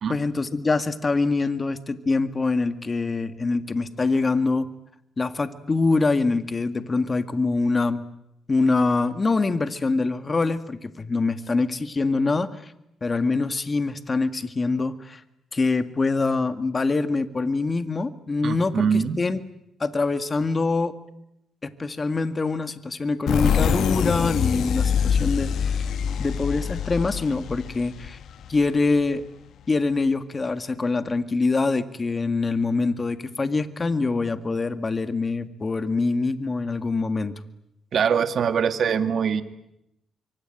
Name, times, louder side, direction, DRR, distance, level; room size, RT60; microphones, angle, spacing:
voice 1, 0.1-4.7 5.2-8.0 8.5-12.7 13.0-15.2 15.5-19.4 19.8-20.9 21.6-25.9 26.2-28.2 28.5-29.2 29.7-37.3, left 3 dB, 30° left, 10 dB, 1.8 m, -24 dB
voice 2, 18.4-19.2 37.9-39.4, right 7 dB, 65° right, 9 dB, 2.1 m, -23 dB
sound 1, 23.3-28.8, left 7 dB, 80° left, 1.5 m, -24 dB
25.0 x 24.5 x 9.0 m, 0.84 s
cardioid pair, 90°, 0 cm